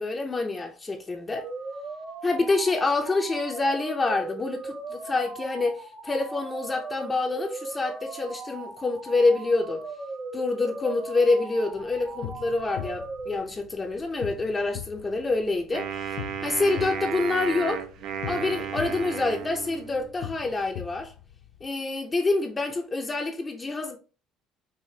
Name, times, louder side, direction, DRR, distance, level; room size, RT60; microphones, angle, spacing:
voice 1, 0.0-1.5 2.2-9.8 10.3-15.9 16.4-17.9 18.3-21.1 21.6-24.0, left 3 dB, 20° left, 0.6 m, -27 dB
sound 1, 1.4-13.4, right 3 dB, 40° right, 1.0 m, -38 dB
sound 2, 11.7-21.7, left 13 dB, 75° left, 0.3 m, -41 dB
Wind instrument woodwind instrument, 15.7-20.2, right 7 dB, 70° right, 0.5 m, -34 dB
4.8 x 2.5 x 2.7 m
cardioid pair, 110°, 0 cm